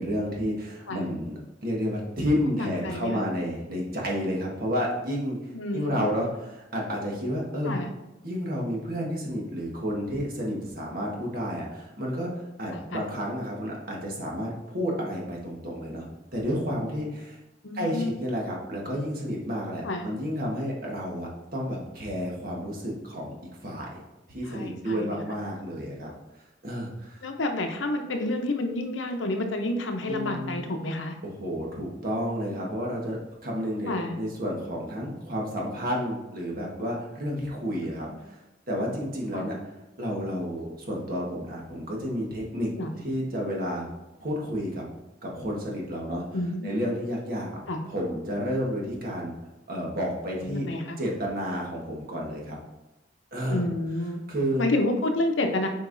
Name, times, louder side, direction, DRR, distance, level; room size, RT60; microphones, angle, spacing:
voice 1, 0.0-5.4 5.7-7.8 8.2-16.0 16.3-17.4 17.7-23.3 23.6-24.0 24.3-26.1 26.6-27.3 30.1-30.5 31.2-38.4 38.7-39.6 40.0-42.7 43.0-43.9 44.2-44.8 45.2-46.2 46.6-47.5 47.9-49.3 49.7-50.6 51.0-52.6 53.3-53.6 54.3-54.7, equal, 50° right, -2 dB, 1.4 m, -31 dB
voice 2, 2.5-3.3 5.5-6.1 7.7-7.9 12.7-13.1 17.6-18.2 19.8-20.1 24.5-25.2 27.2-31.1 33.9-34.2 37.8-37.9 39.3-39.5 42.8-42.9 46.3-46.8 47.7-47.8 50.4-51.0 53.5-54.2 54.6-55.7, left 2 dB, 80° left, 4 dB, 0.8 m, -29 dB
7.9 x 4.6 x 2.6 m, 1.0 s
head